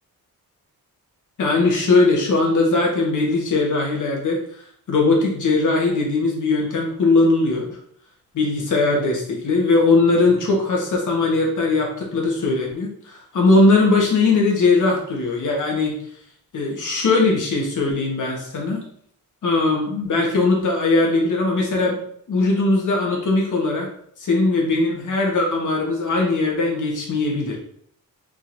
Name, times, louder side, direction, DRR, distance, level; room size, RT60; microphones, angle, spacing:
voice 1, 1.4-4.4 4.9-7.8 8.3-15.9 16.5-18.8 19.4-22.0 22.3-23.9 24.2-27.6, left 3 dB, 55° left, 0 dB, 1.2 m, -19 dB
4.4 x 3.8 x 2.5 m, 0.63 s
wide cardioid pair, 175°, 35 cm